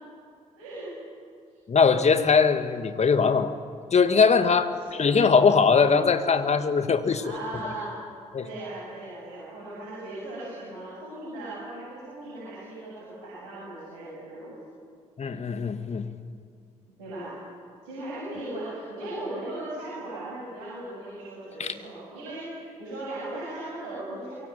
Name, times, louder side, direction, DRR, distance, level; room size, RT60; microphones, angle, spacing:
voice 1, 0.6-0.9 4.6-5.2 7.1-7.9 8.4-14.6 17.0-17.3 17.8-24.3, right 1 dB, 75° right, -7 dB, 7.9 m, -38 dB
voice 2, 1.7-3.5 3.9-4.7 5.0-7.4 8.3-8.4 15.2-16.0 21.6-21.7, left 5 dB, 40° left, 9 dB, 2.2 m, -21 dB
26.0 x 22.5 x 9.5 m, 2.3 s
figure-of-eight pair, 40°, 17 cm